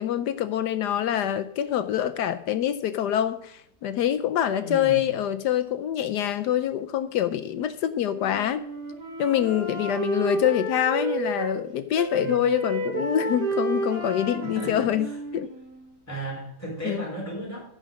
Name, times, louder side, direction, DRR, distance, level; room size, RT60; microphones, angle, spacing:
voice 1, 0.0-8.6 9.2-15.1 15.3-15.5 16.8-17.0, left 10 dB, 75° left, 11 dB, 1.1 m, -25 dB
voice 2, 4.5-5.1 12.2-12.5 14.4-15.2 16.1-17.8, right 2 dB, 10° left, -3 dB, 3.7 m, -35 dB
Wind instrument woodwind instrument, 8.1-11.6 12.0-16.0, right 3 dB, 60° right, 2.8 m, -31 dB
14.0 x 5.2 x 6.3 m, 0.73 s
omnidirectional pair, 1.9 m